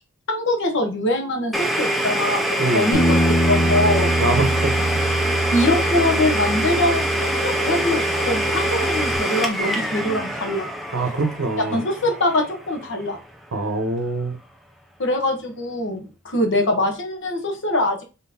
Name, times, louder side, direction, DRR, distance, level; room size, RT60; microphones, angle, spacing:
voice 1, 0.3-4.2 5.5-10.7 11.7-13.2 15.0-18.0, left 1 dB, 60° left, 1.0 m, -23 dB
Domestic sounds home sounds, 1.5-13.2, right 1 dB, ahead, 0.3 m, -24 dB
Bass guitar, 2.9-9.2, right 1 dB, 75° left, 1.4 m, -24 dB
voice 2, 4.2-4.7 10.9-11.8 13.5-14.4, right 2 dB, 70° right, 0.7 m, -23 dB
3.9 x 3.7 x 2.7 m
head